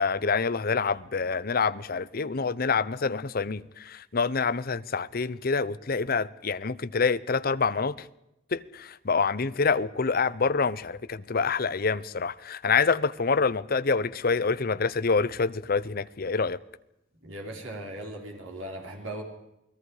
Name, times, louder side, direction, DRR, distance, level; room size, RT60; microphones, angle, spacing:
voice 1, 0.0-8.1 8.5-16.6, left 4 dB, 50° left, 0.7 m, -26 dB
voice 2, 17.2-19.2, right 1 dB, 85° right, 4.5 m, -38 dB
29.0 x 19.5 x 5.0 m
head